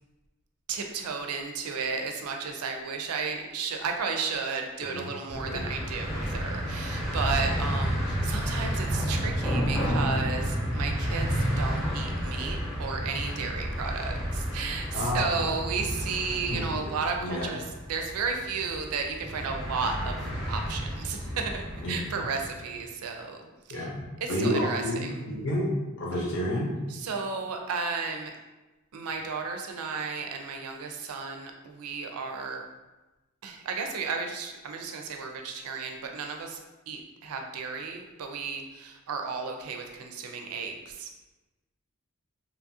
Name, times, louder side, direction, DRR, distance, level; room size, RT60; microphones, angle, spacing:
voice 1, 0.7-17.6 17.9-20.1 20.5-23.9 24.2-25.2 26.9-28.3 28.9-32.7 33.4-36.6 36.9-41.2, right 5 dB, 90° right, 3 dB, 0.4 m, -33 dB
voice 2, 4.8-5.1 5.5-5.7 14.9-15.5 16.5-16.8 17.2-17.5 21.8-22.3 23.7-25.7 26.0-26.7, left 1 dB, 55° left, -4 dB, 0.8 m, -30 dB
sound 1, 5.3-22.5, equal, ahead, 0.6 m, -31 dB
2.9 x 2.4 x 2.6 m, 1.1 s
head